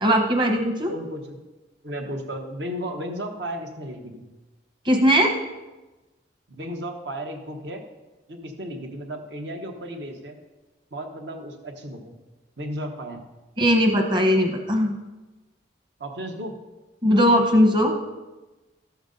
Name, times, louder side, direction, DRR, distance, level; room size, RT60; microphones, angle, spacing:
voice 1, 0.0-0.9 4.8-5.4 13.6-14.9 17.0-18.0, equal, 25° right, 2 dB, 1.2 m, -19 dB
voice 2, 0.9-1.4 1.8-4.2 6.5-7.8 8.3-10.4 10.9-12.2 12.6-13.2 16.0-16.5, equal, 60° right, 3 dB, 1.2 m, -34 dB
12.5 x 7.0 x 3.9 m, 1.1 s
head